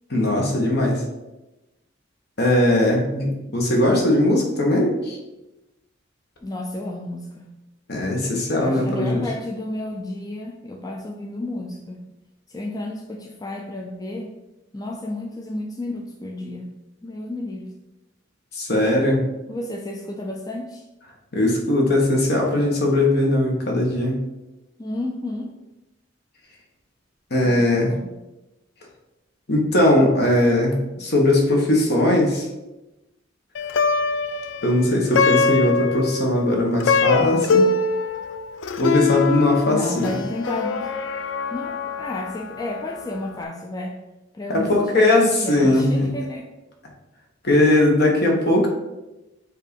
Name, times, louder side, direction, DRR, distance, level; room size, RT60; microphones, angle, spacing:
voice 1, 0.1-1.0 2.4-5.2 7.9-9.2 18.5-19.2 21.3-24.2 27.3-27.9 29.5-32.5 34.6-37.7 38.8-40.2 44.5-46.1 47.4-48.7, left 1 dB, 60° left, 0 dB, 1.4 m, -19 dB
voice 2, 6.4-7.5 8.5-12.1 12.5-14.3 14.7-16.7 17.0-17.8 19.5-20.8 24.8-25.5 27.4-28.1 39.7-40.9 41.5-44.0 44.3-46.5, left 1 dB, 20° left, 1 dB, 0.5 m, -32 dB
Plucked string instrument, 33.5-43.0, left 4 dB, 75° left, 0.4 m, -23 dB
7.4 x 2.7 x 5.2 m, 1.0 s
head